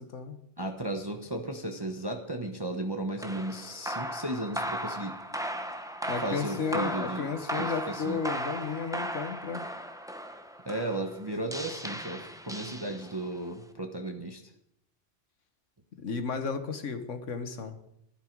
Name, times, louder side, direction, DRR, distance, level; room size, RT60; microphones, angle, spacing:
voice 1, 0.0-0.4 6.1-9.6 16.0-17.8, left 5 dB, 85° left, 8 dB, 1.6 m, -33 dB
voice 2, 0.6-5.1 6.2-7.3 7.6-8.2 10.6-14.4, right 1 dB, 20° right, 4 dB, 1.0 m, -35 dB
sound 1, 3.2-13.4, equal, 5° right, 0.8 m, -36 dB
15.5 x 11.5 x 4.6 m, 0.78 s
omnidirectional pair, 1.2 m